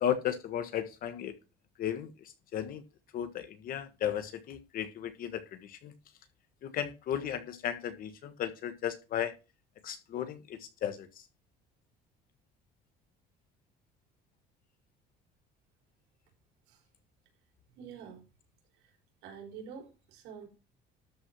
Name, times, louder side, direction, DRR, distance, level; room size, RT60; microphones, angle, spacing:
voice 1, 0.0-1.3 1.8-2.1 2.5-2.8 3.1-5.9 6.6-9.3 9.8-11.1, left 9 dB, 55° left, 10 dB, 1.5 m, -35 dB
voice 2, 17.8-18.2 18.8-18.9 19.2-20.5, right 7 dB, 80° right, 1 dB, 4.7 m, -47 dB
12.5 x 4.9 x 5.9 m, 0.30 s
cardioid pair, 130°, 18 cm